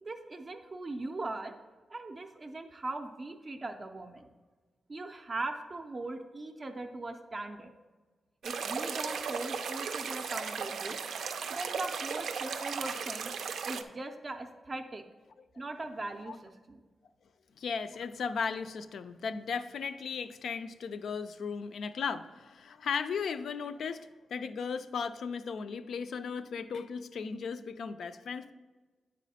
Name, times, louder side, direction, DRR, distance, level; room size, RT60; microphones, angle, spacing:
voice 1, 0.0-1.5 1.9-4.3 4.9-7.7 8.4-11.0 11.5-13.3 13.6-15.0 15.6-16.8, right 2 dB, 25° right, 4 dB, 0.4 m, -40 dB
sound 1, 8.4-13.8, right 6 dB, 90° right, 0.4 m, -36 dB
voice 2, 17.6-28.5, left 5 dB, 70° left, 11 dB, 0.3 m, -36 dB
9.1 x 4.1 x 4.1 m, 1.3 s
wide cardioid pair, 175°, 0 cm